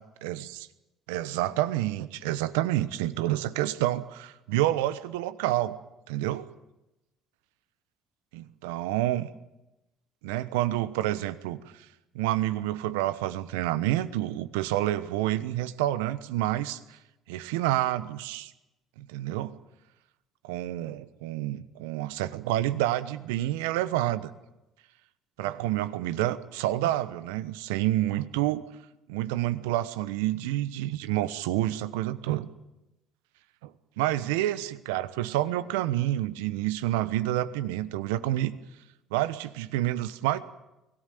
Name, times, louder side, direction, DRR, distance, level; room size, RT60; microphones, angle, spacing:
voice 1, 0.0-0.7 1.1-5.8 6.1-6.4 8.3-9.3 10.2-11.9 12.1-17.0 17.3-18.5 19.0-19.6 20.4-24.3 25.4-28.6 29.1-32.5 33.6-33.7 34.0-38.5 39.1-40.4, right 14 dB, 80° right, 14 dB, 1.0 m, -28 dB
23.5 x 17.5 x 9.3 m, 0.99 s
hypercardioid pair, 60°, 0 cm